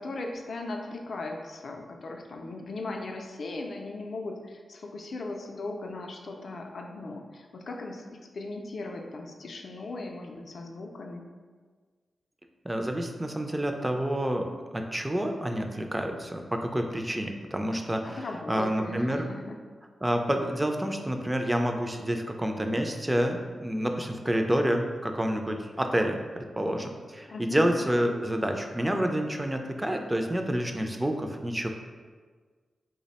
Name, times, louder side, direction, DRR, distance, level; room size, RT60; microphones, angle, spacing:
voice 1, 0.0-11.3 18.0-19.6 27.3-27.7, left 2 dB, 65° left, 2 dB, 0.4 m, -38 dB
voice 2, 12.6-18.2 18.5-19.3 20.0-31.7, equal, 15° right, 4 dB, 0.3 m, -28 dB
3.2 x 2.0 x 4.0 m, 1.5 s
cardioid pair, 70°, 0 cm